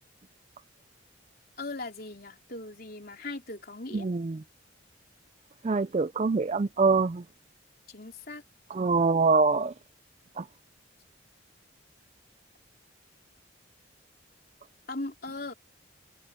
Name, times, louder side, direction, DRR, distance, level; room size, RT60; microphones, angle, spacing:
voice 1, 1.6-4.1 7.9-8.4 14.9-15.5, left 2 dB, 50° left, 3.9 m, -39 dB
voice 2, 3.9-4.4 5.6-7.2 8.7-9.7 10.4-10.5, right 4 dB, 35° right, 0.4 m, -24 dB
head